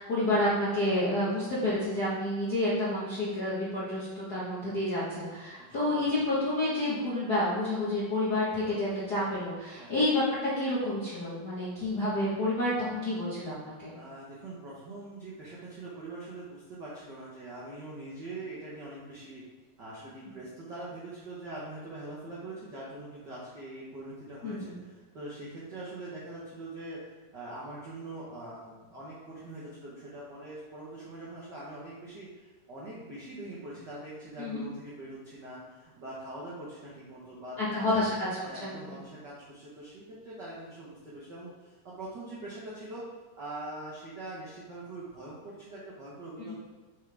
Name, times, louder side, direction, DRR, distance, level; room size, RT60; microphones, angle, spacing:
voice 1, 0.0-13.9 24.4-24.7 34.4-34.6 37.6-38.3 38.5-39.0 46.4-46.5, left 1 dB, 55° left, -9 dB, 1.1 m, -29 dB
voice 2, 9.8-10.1 13.9-19.4 19.8-37.8 38.4-43.0 43.3-46.5, right 2 dB, 65° right, -7 dB, 1.0 m, -43 dB
7.0 x 5.5 x 3.4 m, 1.3 s
omnidirectional pair, 3.8 m